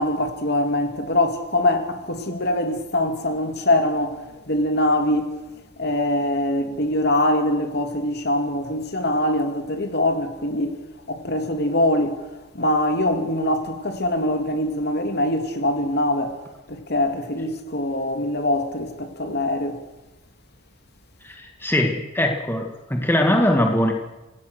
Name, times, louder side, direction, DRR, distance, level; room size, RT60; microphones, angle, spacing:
voice 1, 0.0-5.4 5.8-10.8 11.1-12.3 12.5-16.4 16.7-19.8, left 1 dB, 55° left, 2.9 m, -23 dB
voice 2, 21.2-23.9, left 1 dB, 10° left, 1.9 m, -21 dB
27.5 x 19.5 x 6.6 m
head